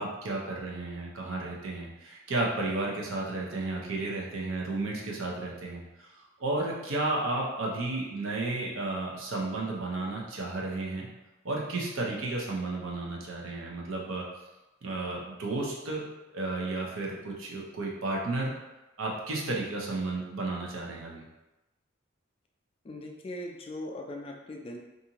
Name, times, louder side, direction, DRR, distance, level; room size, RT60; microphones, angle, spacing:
voice 1, 0.0-5.8 6.4-11.1 11.4-14.3 14.8-16.1 16.3-18.6 19.0-21.2, right 2 dB, 75° right, -2 dB, 0.6 m, -33 dB
voice 2, 22.8-24.8, left 1 dB, 30° left, 1 dB, 0.3 m, -39 dB
2.6 x 2.5 x 2.8 m, 1.0 s
head